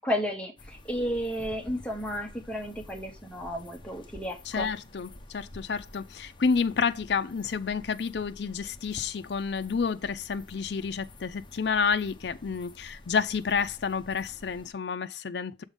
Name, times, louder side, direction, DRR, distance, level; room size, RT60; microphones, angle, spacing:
voice 1, 0.0-4.7, equal, 5° left, 1.5 m, -32 dB
sound 1, 0.6-14.7, left 1 dB, 30° left, 0.8 m, -49 dB
voice 2, 4.5-15.6, left 5 dB, 65° left, 0.5 m, -30 dB
7.1 x 3.6 x 5.2 m
head